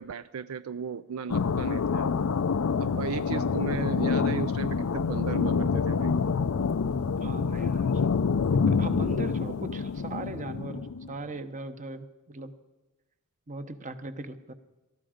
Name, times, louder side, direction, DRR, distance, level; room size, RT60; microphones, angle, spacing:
voice 1, 0.0-2.1 2.8-6.2, right 6 dB, 70° right, 14 dB, 0.4 m, -35 dB
sound 1, 1.3-11.1, left 5 dB, 75° left, 0.5 m, -27 dB
voice 2, 7.2-8.1 8.6-12.5 13.5-14.5, right 2 dB, 35° right, 10 dB, 1.0 m, -39 dB
19.0 x 14.0 x 5.1 m, 1.1 s
head